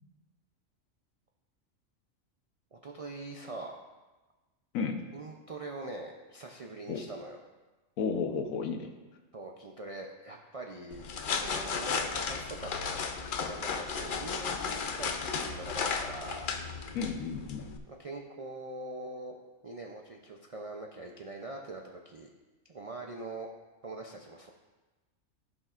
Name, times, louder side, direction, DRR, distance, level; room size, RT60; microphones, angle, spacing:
voice 1, 2.7-3.9 5.1-7.4 9.3-11.1 11.4-13.0 13.4-15.1 15.4-16.5 17.9-19.4 19.6-22.3 22.6-23.5 23.8-24.5, right 2 dB, 60° right, 1 dB, 0.3 m, -43 dB
voice 2, 8.0-8.9 16.9-17.7, left 5 dB, 85° left, 5 dB, 1.2 m, -32 dB
sound 1, 10.9-17.8, left 5 dB, 55° left, 0.6 m, -34 dB
15.0 x 5.3 x 2.4 m, 1.2 s
omnidirectional pair, 1.4 m